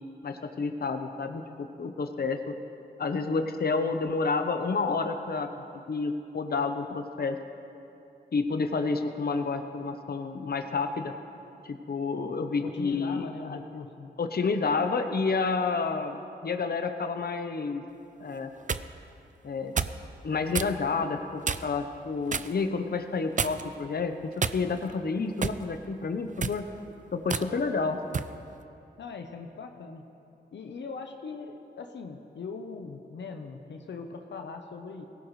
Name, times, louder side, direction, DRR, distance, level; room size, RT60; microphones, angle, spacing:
voice 1, 0.2-2.5 3.0-5.5 5.9-7.4 8.3-11.1 11.6-13.6 14.2-17.8 18.2-18.5 19.4-19.7 20.2-24.1 24.5-26.7 27.1-28.2, left 4 dB, 60° left, 7 dB, 0.8 m, -29 dB
voice 2, 12.6-14.1 27.4-27.6 29.0-30.1 30.5-35.0, left 4 dB, 90° left, 5 dB, 0.8 m, -40 dB
sound 1, 18.3-18.9 19.8-20.0 20.5-20.7 21.4-21.8 22.3-22.5 23.4-23.8 24.4-24.9 25.4-25.6 26.3-26.6 27.3-27.5 28.1-28.3, right 5 dB, 45° right, 0.5 m, -30 dB
18.0 x 16.0 x 3.2 m, 2.7 s
cardioid pair, 50°, 18 cm